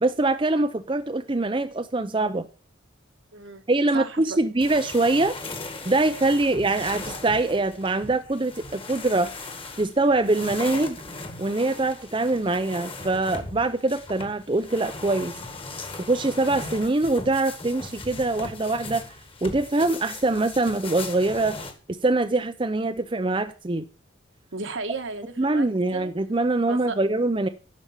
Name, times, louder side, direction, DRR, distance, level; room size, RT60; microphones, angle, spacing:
voice 1, 0.0-2.5 3.7-5.3 5.8-9.5 9.8-11.0 11.4-15.3 16.1-19.0 19.4-21.6 22.0-23.8 25.4-27.5, right 2 dB, 25° right, 0.5 m, -23 dB
voice 2, 3.3-3.6 3.9-4.4 24.5-26.1 26.7-27.0, right 3 dB, 70° right, 1.4 m, -34 dB
sound 1, 4.6-21.7, left 3 dB, 25° left, 1.7 m, -38 dB
12.5 x 5.2 x 7.2 m
head